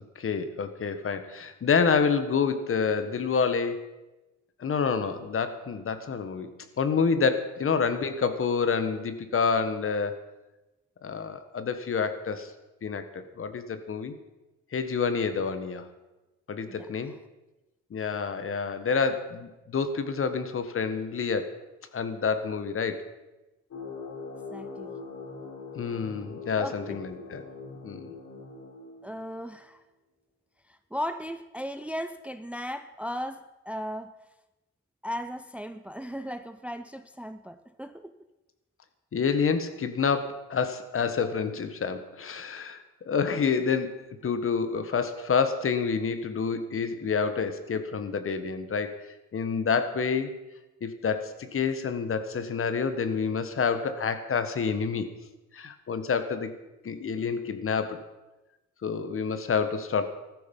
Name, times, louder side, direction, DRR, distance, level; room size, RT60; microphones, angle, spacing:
voice 1, 0.1-3.8 4.6-6.5 6.8-10.3 11.0-12.5 12.8-14.2 14.7-15.9 16.5-17.1 17.9-21.5 21.9-23.0 25.7-27.4 27.8-28.1 39.1-50.3 50.8-55.1 55.5-56.5 56.8-58.0 58.8-60.1, left 5 dB, 45° left, 11 dB, 1.5 m, -28 dB
voice 2, 16.7-17.2 24.5-25.0 26.6-27.0 29.0-29.8 30.7-34.1 35.0-38.1, equal, 5° right, 11 dB, 0.6 m, -37 dB
sound 1, 23.7-29.4, left 4 dB, 60° left, 4.5 m, -42 dB
14.5 x 13.0 x 5.5 m, 1.0 s
cardioid pair, 90°, 30 cm